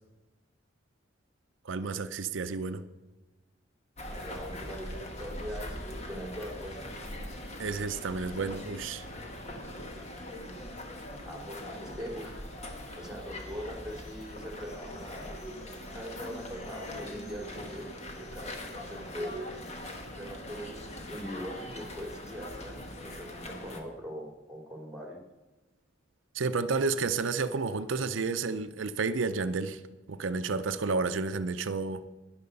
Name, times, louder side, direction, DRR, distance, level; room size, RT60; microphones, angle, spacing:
voice 1, 1.6-2.8 7.6-9.0 26.3-29.8 30.1-32.0, right 4 dB, 85° right, 10 dB, 0.6 m, -31 dB
sound 1, 4.0-23.8, left 1 dB, 35° left, 1.7 m, -41 dB
voice 2, 4.1-6.9 11.2-12.4 12.9-17.9 18.2-19.4 20.1-25.2, equal, 5° right, 1 dB, 3.0 m, -42 dB
12.5 x 10.5 x 5.3 m, 1.1 s
head